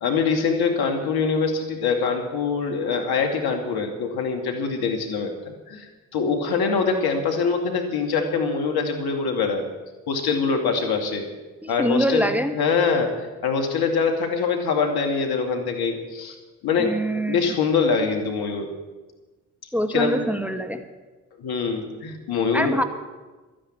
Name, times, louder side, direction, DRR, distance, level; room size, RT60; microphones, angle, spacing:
voice 1, 0.0-5.3 5.7-9.6 10.1-11.3 11.7-12.3 12.5-16.4 16.6-16.9 17.3-18.7 19.9-20.2 21.4-22.8, left 5 dB, 70° left, 4 dB, 2.5 m, -24 dB
voice 2, 11.6-12.5 16.8-17.5 19.7-20.8 22.5-22.8, equal, 5° right, 7 dB, 1.5 m, -24 dB
13.0 x 10.0 x 8.7 m, 1.2 s
hypercardioid pair, 50°, 40 cm